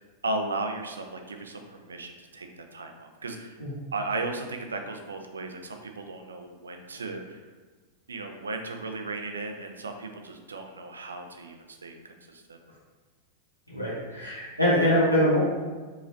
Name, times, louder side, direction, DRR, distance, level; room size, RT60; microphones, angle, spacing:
voice 1, 0.2-3.6 3.9-7.4 8.1-11.9 12.3-12.6, right 2 dB, 75° right, 5 dB, 0.4 m, -35 dB
voice 2, 13.7-15.4, equal, 90° left, -8 dB, 1.1 m, -23 dB
4.9 x 3.0 x 2.7 m, 1.4 s
figure-of-eight pair, 90°, 0 cm